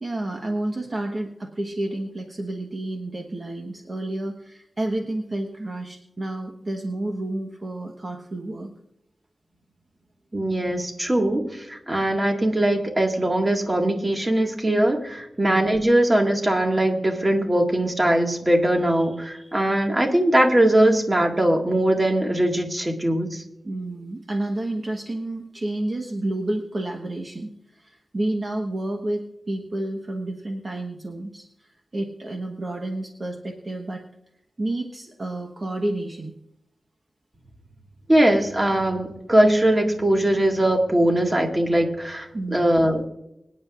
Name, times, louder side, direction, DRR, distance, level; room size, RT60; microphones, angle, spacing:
voice 1, 0.0-8.7 15.4-15.7 23.6-34.0 34.6-36.3 42.3-42.9, right 1 dB, 35° right, 2 dB, 1.1 m, -30 dB
voice 2, 10.3-23.4 38.1-43.0, right 1 dB, 20° right, 2 dB, 1.8 m, -21 dB
25.0 x 9.7 x 2.4 m, 0.82 s
wide cardioid pair, 115°, 0 cm